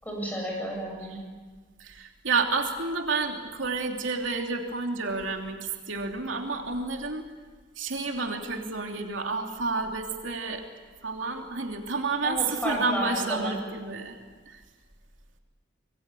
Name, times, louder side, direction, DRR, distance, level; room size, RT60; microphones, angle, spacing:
voice 1, 0.0-1.2 12.2-13.6, equal, 10° left, -1 dB, 7.9 m, -32 dB
voice 2, 1.8-7.2 7.8-10.7 11.0-14.2 14.5-14.6, right 4 dB, 90° right, 2 dB, 3.0 m, -30 dB
26.0 x 21.5 x 8.4 m, 1.4 s
head